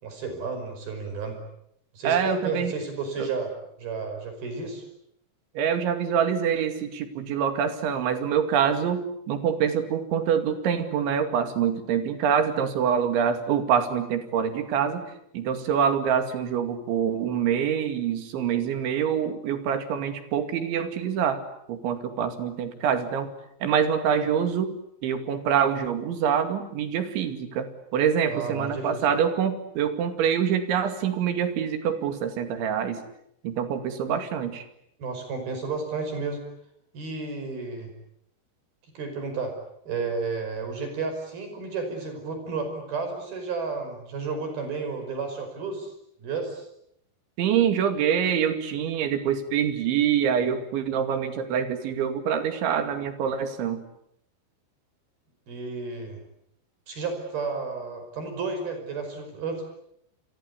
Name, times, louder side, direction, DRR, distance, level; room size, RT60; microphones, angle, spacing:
voice 1, 0.0-1.4 1.9-3.5 3.8-4.8 28.3-29.1 35.0-36.4 36.9-37.9 39.0-39.5 39.9-45.9 46.2-46.7 55.5-56.2 56.9-59.7, right 4 dB, 55° right, 6 dB, 7.0 m, -32 dB
voice 2, 2.0-2.7 3.2-3.3 5.6-21.4 21.7-23.3 23.6-24.7 25.0-33.0 33.4-34.6 47.4-53.8, right 8 dB, 80° right, 8 dB, 4.7 m, -25 dB
29.5 x 23.5 x 8.4 m, 0.74 s
omnidirectional pair, 5.2 m